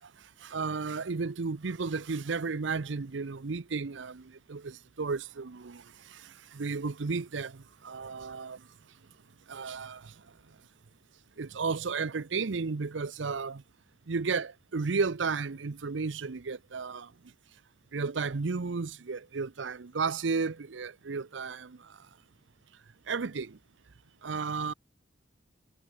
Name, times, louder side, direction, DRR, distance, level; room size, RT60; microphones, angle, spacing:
voice 1, 0.4-5.8 6.1-6.2 6.5-8.6 9.5-10.1 11.4-13.6 14.1-17.1 17.9-21.8 23.1-23.6 24.2-24.7, right 4 dB, 80° right, 0.7 m, -33 dB
head